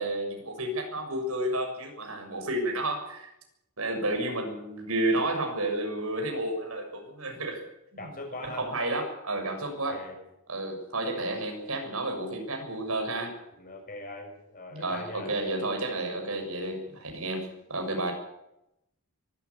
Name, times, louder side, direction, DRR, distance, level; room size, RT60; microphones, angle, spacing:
voice 1, 0.0-3.3 3.8-7.6 8.4-10.0 10.5-13.3 14.7-18.1, right 1 dB, 80° right, 4 dB, 6.8 m, -31 dB
voice 2, 8.0-8.7 9.3-10.2 13.6-15.3, left 2 dB, 40° left, 3 dB, 6.9 m, -42 dB
24.0 x 14.0 x 8.5 m, 0.84 s
head